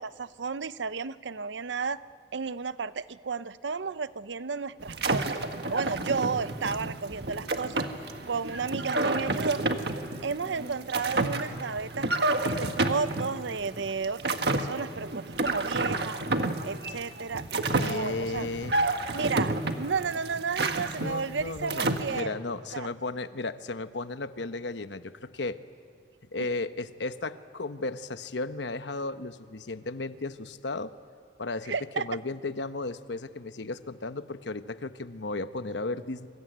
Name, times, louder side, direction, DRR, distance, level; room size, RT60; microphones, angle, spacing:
voice 1, 0.0-2.0 2.3-5.4 5.7-7.8 8.3-9.6 10.2-12.1 12.4-16.2 16.6-18.5 19.1-22.4 22.7-22.9 31.7-32.1, right 5 dB, 90° right, 15 dB, 0.7 m, -32 dB
sound 1, 4.8-22.2, right 2 dB, 65° right, 1.6 m, -30 dB
voice 2, 17.7-18.8 21.0-25.6 26.3-30.9 31.4-36.3, left 3 dB, 80° left, 11 dB, 1.0 m, -34 dB
26.0 x 24.5 x 9.3 m, 2.2 s
head